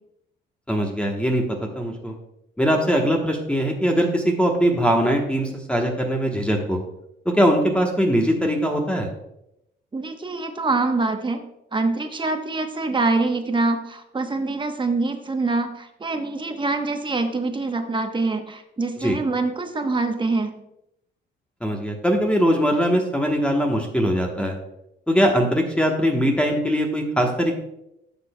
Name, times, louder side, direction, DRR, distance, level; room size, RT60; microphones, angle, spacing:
voice 1, 0.7-2.1 2.6-6.8 7.4-9.1 19.0-19.2 21.6-24.6 25.1-27.5, equal, 5° left, 1 dB, 1.1 m, -21 dB
voice 2, 9.9-11.4 11.7-20.5, right 3 dB, 25° right, 6 dB, 1.0 m, -25 dB
11.0 x 6.8 x 2.2 m, 0.83 s
cardioid pair, 90°, 20 cm